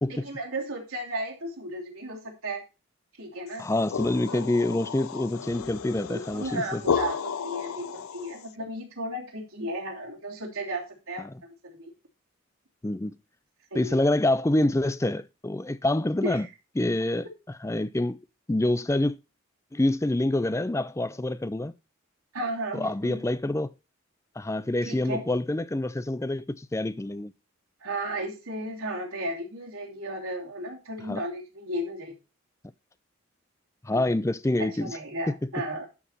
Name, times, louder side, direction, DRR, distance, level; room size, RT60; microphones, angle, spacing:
voice 1, 0.1-2.6 3.2-3.7 4.3-4.4 6.1-11.3 11.6-11.9 13.7-14.1 16.2-16.5 22.3-23.2 24.8-25.2 27.8-32.1 33.9-34.1 34.6-35.9, right 1 dB, 90° right, 2.8 m, -34 dB
sound 1, 3.5-8.5, left 6 dB, 85° left, 0.5 m, -33 dB
voice 2, 3.6-6.8 12.8-13.1 13.7-16.5 16.8-17.3 17.6-18.2 18.5-19.2 19.7-21.7 22.8-23.7 24.4-27.3 31.1-31.2 33.8-34.9, left 1 dB, 15° left, 0.4 m, -26 dB
11.5 x 4.8 x 4.1 m
head